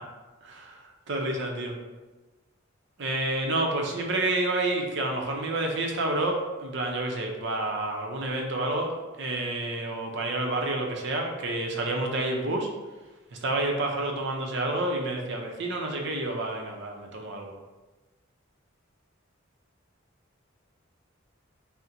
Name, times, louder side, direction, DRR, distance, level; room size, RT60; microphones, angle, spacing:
voice 1, 0.4-0.8 1.1-1.7 3.0-12.7 13.3-17.5, right 2 dB, 60° right, 1 dB, 0.6 m, -29 dB
4.2 x 2.1 x 3.7 m, 1.2 s
head